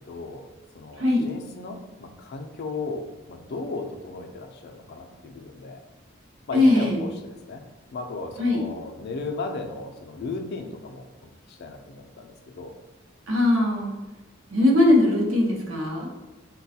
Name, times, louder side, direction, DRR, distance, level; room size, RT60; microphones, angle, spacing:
voice 1, 0.1-0.5 0.7-5.8 6.5-7.6 7.9-11.1 11.5-12.7, left 3 dB, 55° left, 4 dB, 0.4 m, -35 dB
voice 2, 6.5-7.0 8.4-8.6 13.3-13.9 14.5-16.1, left 1 dB, 70° right, -1 dB, 0.8 m, -20 dB
4.0 x 2.2 x 2.7 m, 1.1 s
head